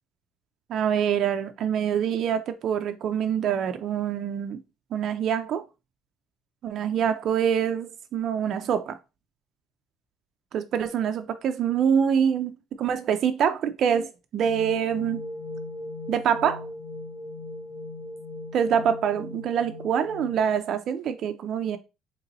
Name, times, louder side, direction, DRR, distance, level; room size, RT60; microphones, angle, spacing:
voice 1, 0.7-4.6 4.9-5.6 6.6-9.0 10.5-15.2 16.1-16.7 18.5-21.8, right 8 dB, 40° right, 0.3 m, -25 dB
sound 1, 14.4-20.4, left 1 dB, 50° left, 1.0 m, -38 dB
4.0 x 3.0 x 2.7 m
cardioid pair, 175°, 0 cm